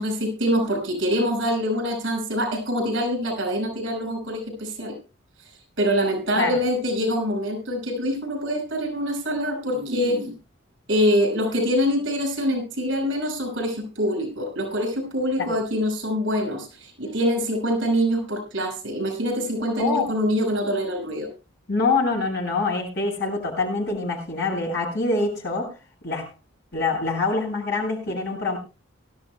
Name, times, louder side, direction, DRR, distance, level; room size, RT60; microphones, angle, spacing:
voice 1, 0.0-5.0 5.8-10.3 10.9-21.3, equal, 70° right, 5 dB, 5.5 m, -25 dB
voice 2, 19.8-20.1 21.7-25.7 26.0-26.3 26.7-28.6, left 3 dB, 55° left, -1 dB, 7.5 m, -25 dB
23.5 x 13.0 x 2.2 m, 0.31 s
head